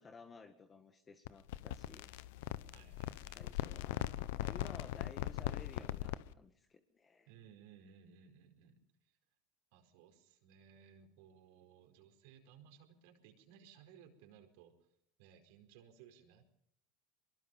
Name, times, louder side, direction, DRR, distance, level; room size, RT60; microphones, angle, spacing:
voice 1, 0.0-2.1 3.3-4.0 4.3-7.3, left 4 dB, 25° left, 6 dB, 1.9 m, -56 dB
sound 1, 1.2-6.3, left 14 dB, 75° left, 0.9 m, -40 dB
voice 2, 2.7-3.6 4.4-4.6 7.3-9.1 9.7-14.7 15.2-16.4, right 8 dB, 70° right, 5 dB, 4.8 m, -61 dB
23.5 x 22.5 x 5.6 m, 0.72 s
hypercardioid pair, 95°, 0 cm